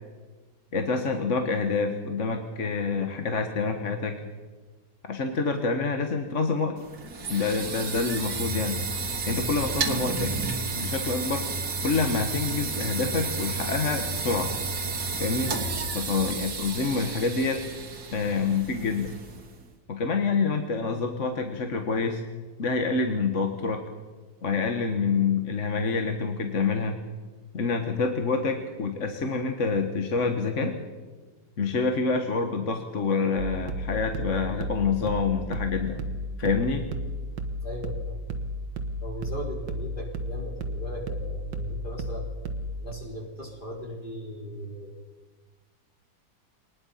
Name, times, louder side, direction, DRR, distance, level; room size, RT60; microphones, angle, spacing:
voice 1, 0.7-4.1 5.1-6.8 7.3-8.8 9.3-10.3 10.7-11.5 11.8-14.5 15.2-15.5 15.9-17.6 18.1-19.1 19.9-22.2 22.6-23.8 24.4-27.0 27.5-30.7 31.6-36.0 36.4-36.9, left 4 dB, 45° left, 5 dB, 1.6 m, -27 dB
sound 1, 6.8-19.6, right 4 dB, 65° right, 2.2 m, -32 dB
sound 2, 33.4-42.9, equal, 85° right, 1.9 m, -33 dB
voice 2, 37.6-38.2 39.0-42.3 42.8-44.9, equal, 30° left, -1 dB, 4.4 m, -38 dB
23.0 x 19.5 x 5.7 m, 1.4 s
omnidirectional pair, 1.8 m